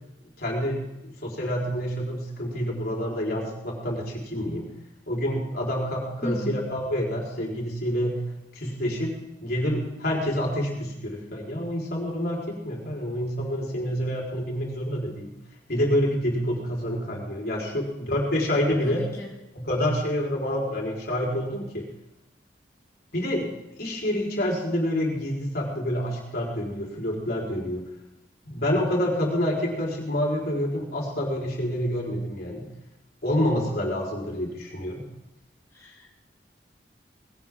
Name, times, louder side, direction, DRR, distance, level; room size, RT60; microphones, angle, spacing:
voice 1, 0.4-4.7 5.1-8.2 8.5-9.1 9.4-15.3 15.7-19.0 19.5-21.9 23.1-23.5 23.8-27.8 28.4-32.7 33.2-35.0, equal, 60° left, -2 dB, 4.5 m, -27 dB
voice 2, 6.2-6.6 18.8-19.3 35.7-36.3, left 1 dB, 20° left, -5 dB, 2.6 m, -35 dB
20.0 x 17.0 x 3.8 m, 0.92 s
head